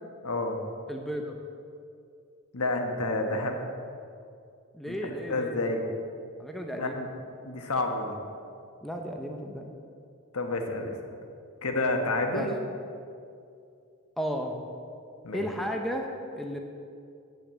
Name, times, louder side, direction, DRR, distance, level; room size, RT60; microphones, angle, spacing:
voice 1, 0.2-0.6 2.5-3.6 4.8-5.8 6.7-7.0 7.4-8.2 10.3-11.0 11.6-12.5 15.2-15.5, left 2 dB, 80° left, 3 dB, 1.1 m, -29 dB
voice 2, 0.9-1.4 4.7-5.8 6.4-7.0 8.8-9.7 12.3-12.5 14.2-14.6 15.3-16.6, equal, ahead, 2 dB, 0.5 m, -34 dB
8.9 x 5.7 x 7.3 m, 2.4 s
head